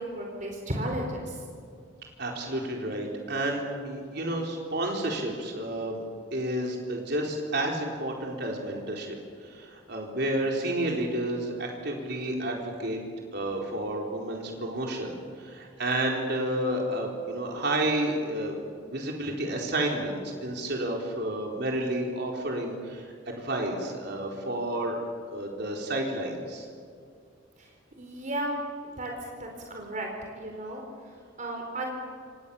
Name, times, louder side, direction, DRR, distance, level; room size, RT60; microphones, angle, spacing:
voice 1, 0.0-1.4 27.6-27.7 28.0-28.6 28.8-29.1 29.4-30.1 30.4-31.9, right 1 dB, 40° right, 1 dB, 4.3 m, -34 dB
voice 2, 2.2-6.0 6.3-13.0 13.3-18.6 18.8-26.7, right 1 dB, 60° right, 0 dB, 4.2 m, -31 dB
28.0 x 27.5 x 7.1 m, 2.2 s
head